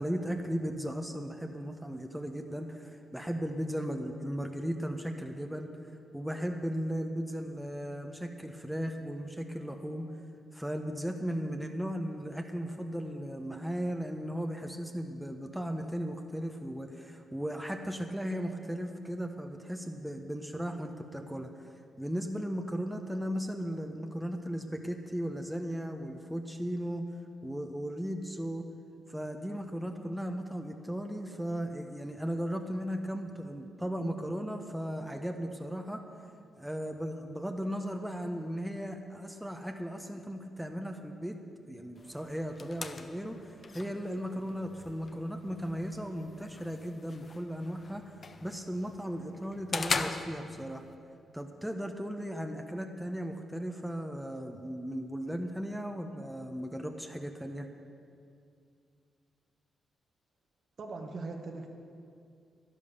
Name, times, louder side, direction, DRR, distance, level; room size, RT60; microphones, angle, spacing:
voice 1, 0.0-5.7 6.1-10.1 10.5-21.5 22.0-27.0 27.4-28.6 29.1-36.0 36.6-41.4 41.7-48.0 48.4-50.8 51.3-57.7, equal, 5° right, 4 dB, 1.1 m, -36 dB
sound 1, 41.9-50.9, left 4 dB, 45° left, 0.8 m, -41 dB
voice 2, 60.8-61.7, right 3 dB, 60° right, 2 dB, 1.6 m, -40 dB
11.0 x 11.0 x 6.9 m, 2.4 s
cardioid pair, 65°, 0 cm